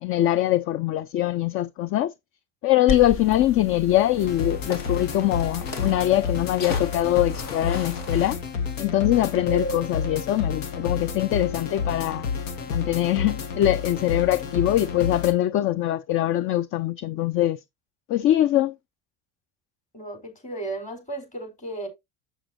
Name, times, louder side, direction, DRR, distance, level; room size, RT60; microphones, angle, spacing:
voice 1, 0.0-2.1 2.6-8.4 8.8-12.3 12.7-17.6 18.1-18.7, left 13 dB, 35° left, 0.4 m, -23 dB
sound 1, 2.9-8.3, left 4 dB, 55° left, 2.6 m, -35 dB
sound 2, 4.2-15.3, left 5 dB, 80° left, 1.7 m, -30 dB
voice 2, 19.9-21.9, right 2 dB, 20° left, 4.4 m, -34 dB
8.1 x 7.1 x 2.8 m
hypercardioid pair, 85°, 38 cm